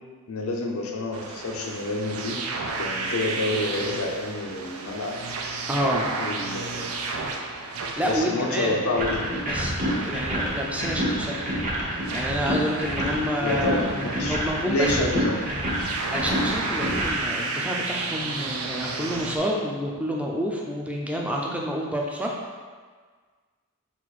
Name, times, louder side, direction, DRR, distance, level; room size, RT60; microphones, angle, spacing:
voice 1, 0.3-2.4 2.8-5.2 6.2-6.8 8.0-9.3 13.4-14.4 14.7-15.4, left 2 dB, 90° left, 1 dB, 0.6 m, -28 dB
sound 1, 1.1-19.4, right 3 dB, 85° right, 0.5 m, -33 dB
voice 2, 5.7-6.1 8.0-8.8 9.5-9.7 10.1-11.5 12.1-14.9 16.1-22.3, equal, 5° right, -1 dB, 0.4 m, -28 dB
sound 2, 9.0-17.1, equal, 40° right, 0.8 m, -28 dB
4.5 x 2.4 x 4.1 m, 1.5 s
head